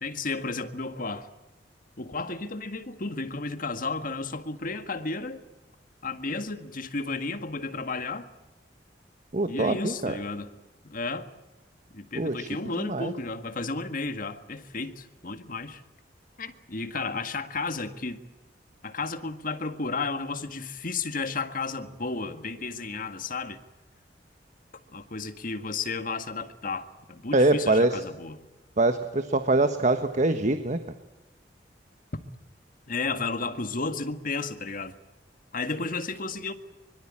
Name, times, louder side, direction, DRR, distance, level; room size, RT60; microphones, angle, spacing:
voice 1, 0.0-1.3 2.0-5.4 6.0-8.3 9.5-10.5 10.8-11.3 11.9-15.8 16.4-18.2 18.8-23.6 24.9-28.4 32.9-34.9 35.5-36.5, left 3 dB, 50° left, 1.8 m, -33 dB
voice 2, 9.3-10.2 12.1-12.5 12.8-13.1 27.3-28.0 28.8-30.8, right 2 dB, 45° right, 1.4 m, -24 dB
24.5 x 22.5 x 8.8 m
head